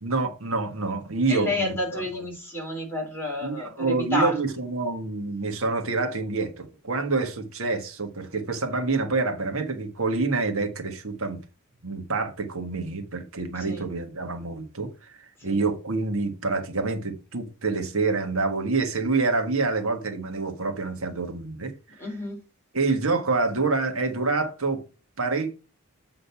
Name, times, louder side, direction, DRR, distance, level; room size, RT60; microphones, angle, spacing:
voice 1, 0.0-2.0 3.4-11.4 11.8-21.7 22.7-24.8 25.2-25.5, right 3 dB, 65° right, 1.5 m, -27 dB
voice 2, 1.3-4.4 13.5-13.8 15.4-15.6 22.0-22.4, left 1 dB, 10° left, 3.3 m, -30 dB
8.3 x 3.8 x 5.7 m
head